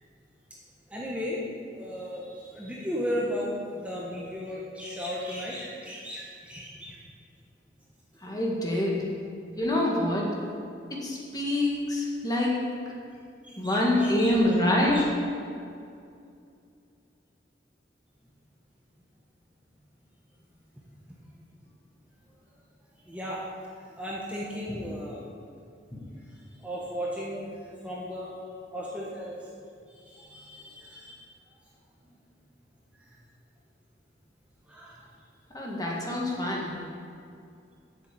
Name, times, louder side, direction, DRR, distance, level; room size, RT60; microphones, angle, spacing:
voice 1, 0.9-1.4 1.7-7.0 13.6-14.4 14.9-15.1 23.0-23.4 24.0-25.3 26.6-27.5 27.8-28.3 28.7-29.4 30.1-31.2 34.7-35.0, equal, 10° right, -5 dB, 1.2 m, -35 dB
voice 2, 8.2-9.1 9.6-10.3 10.9-12.6 13.6-15.0 25.9-26.0 35.5-36.8, left 1 dB, 20° left, -2 dB, 1.8 m, -26 dB
7.8 x 6.9 x 8.4 m, 2.4 s
head